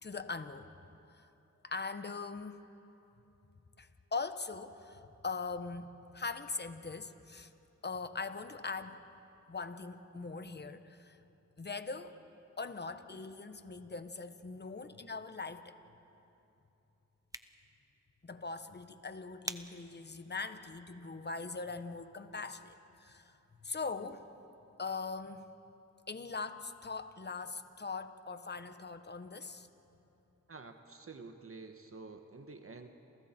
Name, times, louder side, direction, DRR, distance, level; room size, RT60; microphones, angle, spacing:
voice 1, 0.0-0.7 1.2-1.3 1.6-2.6 3.8-7.5 7.8-9.0 9.5-11.2 11.6-12.2 12.6-15.7 18.2-24.3 24.8-25.5 26.1-29.7, left 4 dB, 35° left, 10 dB, 1.3 m, -41 dB
sound 1, 17.1-22.1, right 1 dB, 10° right, 1.0 m, -50 dB
voice 2, 30.5-32.9, right 3 dB, 45° right, 6 dB, 1.4 m, -49 dB
29.5 x 28.5 x 4.5 m, 2.9 s
cardioid pair, 60°, 30 cm